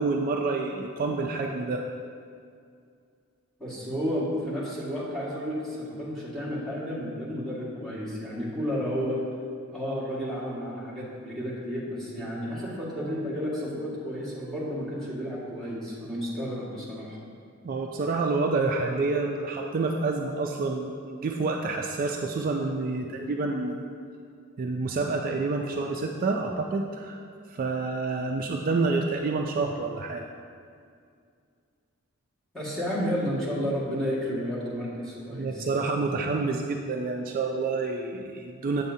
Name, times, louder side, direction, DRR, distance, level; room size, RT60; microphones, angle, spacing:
voice 1, 0.0-1.8 17.6-23.8 24.6-27.2 27.5-30.2 35.3-38.8, right 3 dB, 45° right, 2 dB, 0.3 m, -28 dB
voice 2, 3.6-9.2 9.7-17.2 32.5-35.7, equal, 5° left, -9 dB, 1.7 m, -32 dB
8.1 x 7.0 x 2.7 m, 2.3 s
head